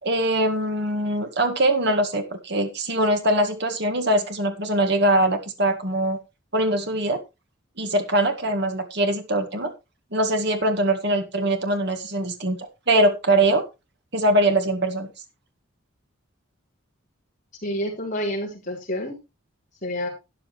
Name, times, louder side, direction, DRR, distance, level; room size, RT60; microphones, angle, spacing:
voice 1, 0.0-6.2 6.5-7.2 7.8-9.7 10.1-13.6 14.1-15.1, right 1 dB, 55° right, 6 dB, 1.9 m, -22 dB
voice 2, 17.6-19.2 19.8-20.1, equal, 35° left, -1 dB, 4.3 m, -28 dB
13.0 x 9.9 x 3.2 m, 0.25 s
head